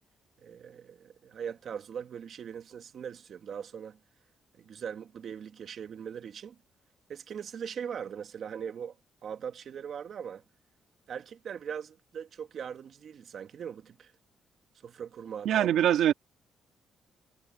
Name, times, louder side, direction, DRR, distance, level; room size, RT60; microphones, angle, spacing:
voice 1, 0.4-4.0 4.6-6.6 7.1-8.9 9.2-10.4 11.1-14.1 14.8-15.7, right 7 dB, 55° right, 2.2 m, -40 dB
voice 2, 15.5-16.1, right 11 dB, 85° right, 1.9 m, -23 dB
cardioid pair, 110°, 0 cm